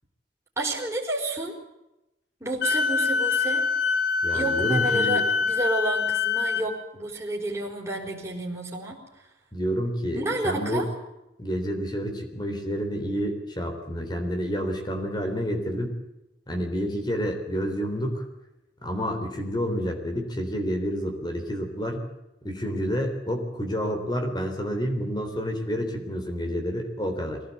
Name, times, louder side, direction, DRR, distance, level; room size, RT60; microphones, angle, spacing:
voice 1, 0.6-1.6 2.4-3.6 4.3-9.3 10.1-10.9, right 1 dB, 15° right, -3 dB, 4.7 m, -30 dB
Wind instrument woodwind instrument, 2.6-6.7, left 5 dB, 80° left, 3.1 m, -24 dB
voice 2, 4.2-5.2 9.5-10.9 11.4-16.0 16.5-18.2 18.8-22.0 22.4-27.4, equal, 25° left, 4 dB, 3.7 m, -29 dB
23.0 x 17.0 x 8.4 m, 0.93 s
head